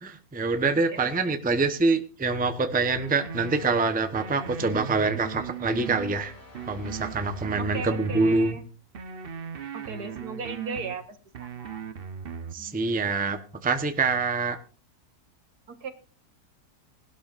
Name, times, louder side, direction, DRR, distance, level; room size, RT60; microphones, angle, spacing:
voice 1, 0.0-6.3 6.7-8.6 12.5-14.6, right 3 dB, 5° right, 7 dB, 0.7 m, -25 dB
voice 2, 0.9-1.4 4.5-5.3 7.6-8.6 9.7-11.8 12.6-12.7 15.7-15.9, right 5 dB, 75° right, 8 dB, 2.0 m, -37 dB
sound 1, 3.0-3.7 4.1-6.2 6.5-8.5 8.9-11.0 11.3-12.6, right 6 dB, 45° right, 0.9 m, -38 dB
sound 2, 5.4-8.2, equal, 55° left, 4.4 m, -48 dB
19.5 x 12.0 x 2.5 m, 0.38 s
omnidirectional pair, 1.7 m